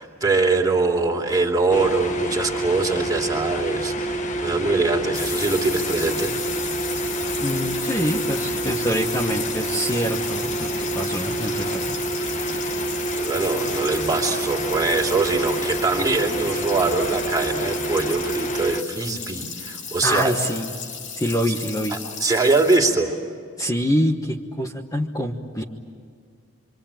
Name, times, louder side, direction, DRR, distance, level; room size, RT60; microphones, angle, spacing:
voice 1, 0.0-6.3 13.2-20.4 21.5-21.6 21.9-23.1, right 3 dB, 20° right, 0 dB, 3.0 m, -23 dB
sound 1, 1.7-18.8, right 2 dB, 35° left, 1.1 m, -27 dB
sound 2, 5.1-22.8, left 6 dB, 60° left, 2.8 m, -34 dB
voice 2, 7.4-11.9 20.0-20.7 21.2-22.0 23.6-25.6, equal, 15° left, 1 dB, 1.2 m, -25 dB
26.5 x 25.0 x 8.9 m, 2.2 s
head